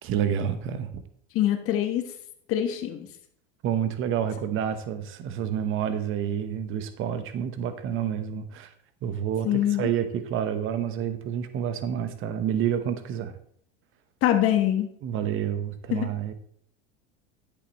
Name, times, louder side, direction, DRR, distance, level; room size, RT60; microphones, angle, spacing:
voice 1, 0.0-1.0 3.6-8.7 9.0-13.3 15.0-16.3, right 9 dB, 40° right, 10 dB, 1.1 m, -29 dB
voice 2, 1.3-2.0 2.5-3.1 9.4-9.9 14.2-14.9 15.9-16.1, left 11 dB, 45° left, 7 dB, 1.3 m, -24 dB
10.5 x 8.4 x 3.1 m, 0.66 s
supercardioid pair, 115°, 32 cm